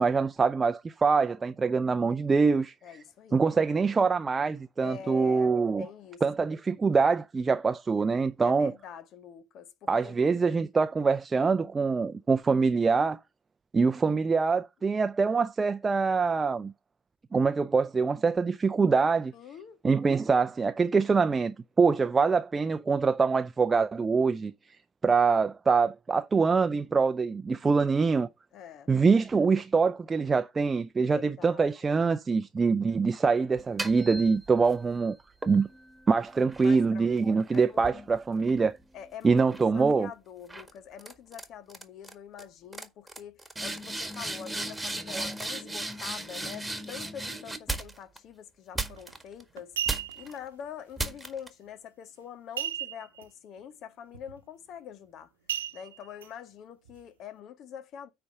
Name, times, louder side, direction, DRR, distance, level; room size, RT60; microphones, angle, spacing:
voice 1, 0.0-2.7 3.3-5.8 6.2-8.7 9.9-13.2 13.7-16.7 17.3-19.3 19.8-24.5 25.0-28.3 28.9-35.2 35.5-35.7 36.1-38.8 39.2-40.1 45.1-45.3, right 4 dB, 25° right, 0.5 m, -24 dB
voice 2, 2.8-3.4 4.8-6.5 8.4-10.3 19.3-19.8 28.5-28.9 31.1-31.7 36.6-37.1 37.6-38.0 38.9-49.7 50.1-55.3 55.7-58.1, left 8 dB, 55° left, 1.0 m, -45 dB
sound 1, 33.6-34.8 35.4-39.0 39.4-39.8 40.5-40.7 41.0-41.4 41.7-42.1 42.4-42.5 42.7-48.2 48.8-49.4 49.9-50.3 51.0-51.5, right 2 dB, 5° right, 1.8 m, -37 dB
sound 2, 48.9-49.1 49.6-50.4 52.6-53.2 53.6-53.7 54.1-54.4 55.5-56.3 56.8-56.9, right 11 dB, 85° right, 1.0 m, -34 dB
9.4 x 3.4 x 6.7 m
hypercardioid pair, 65°, 0 cm